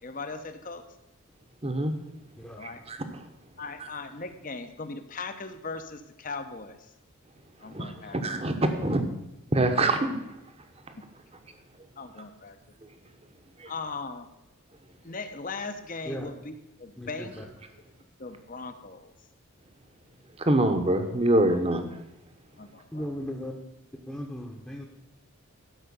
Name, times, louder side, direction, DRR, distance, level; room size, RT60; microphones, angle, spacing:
voice 1, 0.0-0.8 2.6-2.8 3.6-6.9 7.6-8.2 11.0-11.1 12.0-12.6 13.6-14.3 15.0-17.4 18.2-19.1 21.5-21.6 22.6-23.0, left 4 dB, 35° left, 9 dB, 0.8 m, -39 dB
voice 2, 1.6-1.9 2.9-3.0 7.7-9.0 9.5-10.1 13.6-13.7 20.4-21.8, right 1 dB, 25° right, 7 dB, 1.0 m, -24 dB
voice 3, 17.0-17.5 22.9-23.5 24.1-24.8, equal, 5° left, -1 dB, 0.9 m, -36 dB
12.5 x 5.6 x 7.0 m, 0.91 s
head